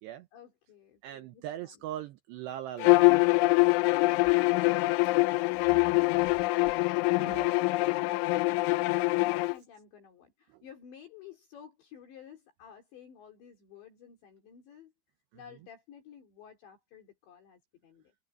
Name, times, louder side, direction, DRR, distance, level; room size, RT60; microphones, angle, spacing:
voice 1, 0.3-1.8 4.3-14.9 15.3-18.1, left 8 dB, 60° left, 5.6 m, -54 dB
voice 2, 1.0-3.5 7.2-7.6, right 12 dB, 85° right, 2.4 m, -41 dB
Bowed string instrument, 2.8-9.5, left 23 dB, 85° left, 2.9 m, -24 dB
omnidirectional pair, 5.9 m